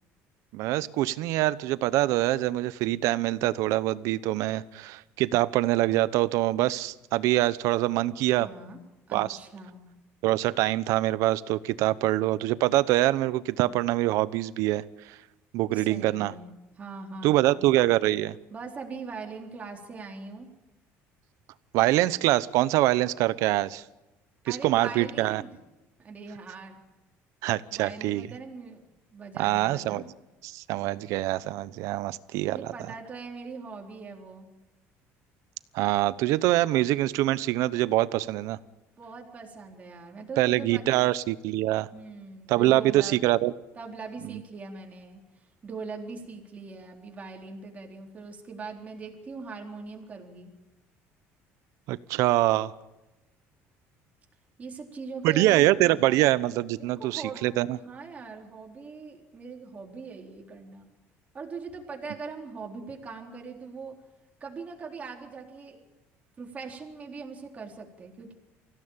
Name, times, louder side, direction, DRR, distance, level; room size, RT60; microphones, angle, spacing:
voice 1, 0.5-8.5 9.1-9.4 10.2-15.2 15.5-16.3 17.2-18.4 21.7-23.8 24.5-25.4 27.4-28.3 29.4-30.0 30.4-32.7 35.7-38.6 40.4-41.9 42.5-43.5 44.3-44.4 51.9-52.7 55.2-57.8, right 16 dB, 75° right, 16 dB, 0.9 m, -24 dB
voice 2, 8.4-8.8 9.1-9.9 15.7-17.7 18.5-20.5 24.5-25.5 26.0-26.8 27.6-28.8 29.1-30.0 32.4-34.5 39.0-41.1 41.9-43.2 43.8-45.2 45.6-50.5 54.6-56.4 56.8-57.4 57.8-60.9 61.3-63.9 64.4-65.8 66.4-68.3, right 4 dB, 25° right, 1 dB, 4.0 m, -41 dB
25.0 x 16.5 x 8.9 m, 1.0 s
cardioid pair, 135°, 5 cm